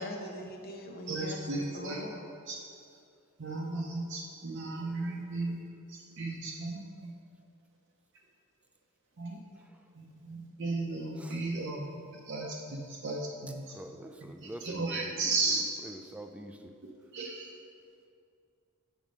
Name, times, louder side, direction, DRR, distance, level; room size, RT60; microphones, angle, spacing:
voice 1, 0.0-2.2, left 1 dB, 45° left, 1 dB, 0.8 m, -42 dB
voice 2, 1.1-2.0 2.5-2.6 3.4-5.6 5.9-7.1 9.2-9.4 10.0-11.9 12.3-13.6 14.6-15.7 17.1-17.5, right 3 dB, 55° right, -2 dB, 0.7 m, -35 dB
voice 3, 13.7-16.7, right 1 dB, 5° right, 5 dB, 0.3 m, -46 dB
7.3 x 4.6 x 5.1 m, 2.4 s
head